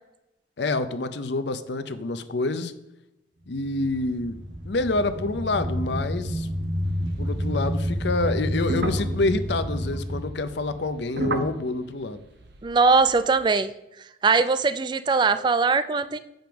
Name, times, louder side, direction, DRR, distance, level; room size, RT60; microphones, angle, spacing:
voice 1, 0.6-2.7 3.5-6.5 7.2-12.2, left 2 dB, 65° left, 11 dB, 0.6 m, -27 dB
sound 1, 3.5-10.2, equal, 75° right, 1.4 m, -29 dB
sound 2, 6.8-13.4, right 2 dB, 55° right, 0.7 m, -35 dB
voice 2, 12.6-13.7 14.0-16.2, right 4 dB, 25° right, 13 dB, 0.3 m, -21 dB
7.8 x 5.2 x 5.9 m, 0.90 s
head